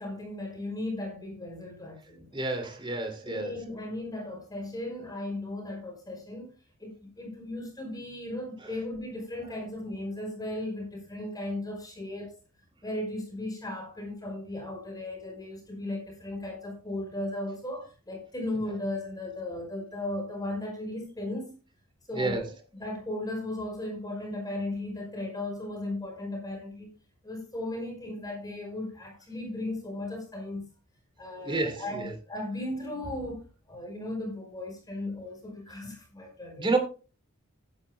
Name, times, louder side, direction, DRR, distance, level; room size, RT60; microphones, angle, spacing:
voice 1, 0.0-2.4 3.2-6.5 6.8-12.4 12.8-21.6 22.1-22.5 22.8-26.9 27.2-30.7 31.2-36.7, left 1 dB, 20° left, 5.1 m, -36 dB
voice 2, 2.3-3.5 8.6-8.7 22.1-22.5 31.4-32.1 36.6-36.8, right 3 dB, 25° right, 2.6 m, -30 dB
16.0 x 10.5 x 2.2 m
head